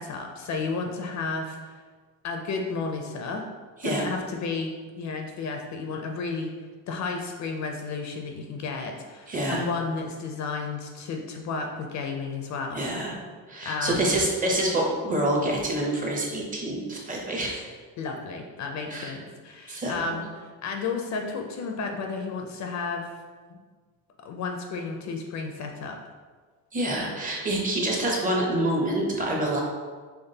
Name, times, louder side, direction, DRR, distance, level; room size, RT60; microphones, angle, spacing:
voice 1, 0.0-1.8 2.2-3.5 3.8-6.5 6.9-12.8 13.6-14.1 18.0-23.1 23.5-23.6 24.2-26.0, left 4 dB, 45° left, 3 dB, 0.4 m, -32 dB
voice 2, 9.3-9.6 12.7-13.2 13.5-17.6 18.9-19.1 19.7-20.1 26.7-29.6, right 1 dB, 20° right, -2 dB, 0.6 m, -27 dB
5.8 x 3.4 x 2.7 m, 1.5 s
cardioid pair, 180°, 39 cm